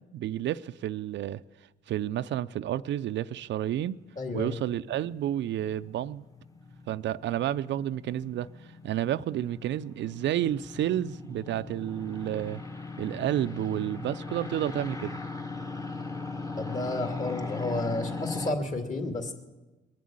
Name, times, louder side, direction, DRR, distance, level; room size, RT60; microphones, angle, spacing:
voice 1, 0.0-1.4 1.9-4.0 4.3-6.2 6.9-12.6 13.0-15.2, right 12 dB, 65° right, 0.5 m, -30 dB
sound 1, 3.9-18.5, left 3 dB, 15° left, 1.1 m, -40 dB
voice 2, 4.2-4.6 16.6-19.3, left 2 dB, 40° left, 2.4 m, -31 dB
21.0 x 7.5 x 8.7 m
cardioid pair, 90°, 20 cm